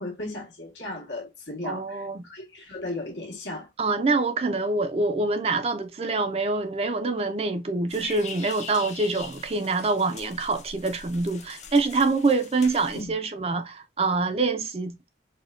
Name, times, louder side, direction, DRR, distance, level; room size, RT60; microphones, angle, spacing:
voice 1, 0.0-3.7 12.9-13.1, left 2 dB, 85° left, 1.5 m, -36 dB
voice 2, 1.6-2.2 3.8-15.0, right 3 dB, 35° right, 0.4 m, -25 dB
sound 1, 7.9-13.0, left 6 dB, 40° left, 0.5 m, -42 dB
4.2 x 2.2 x 2.4 m
head